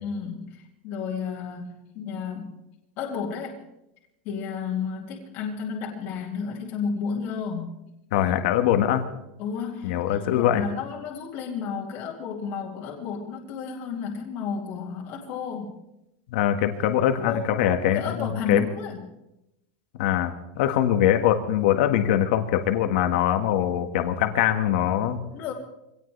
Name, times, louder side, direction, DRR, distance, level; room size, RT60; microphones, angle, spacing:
voice 1, 0.0-2.5 3.0-3.6 4.2-7.8 9.4-9.9 10.3-15.8 17.2-17.4 17.8-19.0 25.3-25.5, left 6 dB, 35° left, -2 dB, 2.4 m, -32 dB
voice 2, 8.1-9.1 9.8-10.6 16.3-18.7 20.0-25.2, left 11 dB, 60° left, 6 dB, 1.6 m, -23 dB
24.0 x 17.5 x 3.4 m, 0.88 s
supercardioid pair, 175°, 6 cm